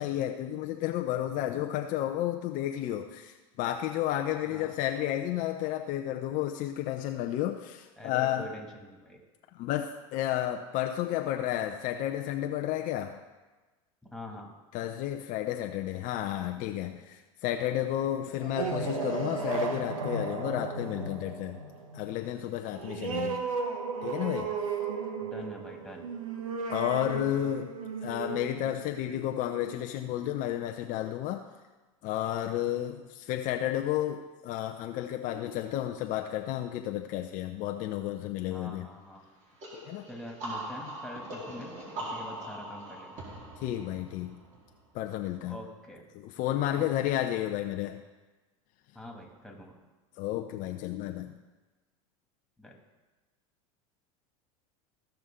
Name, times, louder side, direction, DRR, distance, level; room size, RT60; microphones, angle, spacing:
voice 1, 0.0-8.5 9.6-13.2 14.7-21.6 21.9-23.4 24.0-24.6 26.7-27.7 28.0-31.5 32.0-38.9 39.7-40.1 43.6-44.4 44.9-45.6 46.2-48.0 50.2-51.4, left 12 dB, 50° left, 5 dB, 0.7 m, -32 dB
voice 2, 4.4-4.8 8.0-9.2 14.1-14.5 22.9-23.6 25.2-26.1 38.5-39.2 40.1-43.2 45.5-46.1 46.7-47.1 48.9-49.8 52.6-52.7, equal, ahead, 0 dB, 2.4 m, -45 dB
sound 1, 18.3-29.5, right 4 dB, 90° right, 1.2 m, -35 dB
sound 2, 39.6-45.2, right 1 dB, 45° right, 3.5 m, -41 dB
15.0 x 5.8 x 3.8 m, 1.2 s
hypercardioid pair, 95°, 17 cm